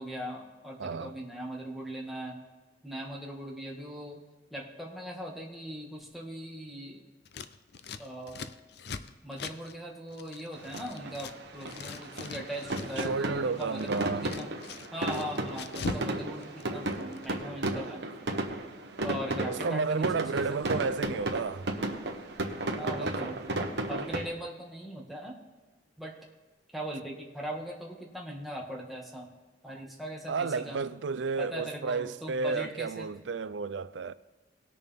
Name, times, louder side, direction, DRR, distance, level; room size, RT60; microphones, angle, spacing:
voice 1, 0.0-2.4 2.8-4.2 4.5-7.0 8.0-8.4 9.2-14.5 14.9-18.0 19.0-20.4 20.7-20.8 22.8-23.4 23.9-25.3 26.0-26.2 26.7-29.3 29.6-30.8 31.4-33.1, right 1 dB, ahead, 2.0 m, -40 dB
voice 2, 0.8-1.1 13.0-14.3 19.4-21.7 22.8-23.4 29.7-29.8 30.3-34.1, right 4 dB, 85° right, 0.5 m, -32 dB
Scissors, 7.2-11.3 11.6-13.2 13.5-16.1 16.3-17.3, left 5 dB, 60° left, 0.6 m, -42 dB
sound 1, 10.6-24.2, right 1 dB, 70° right, 1.2 m, -34 dB
19.0 x 6.8 x 3.6 m
head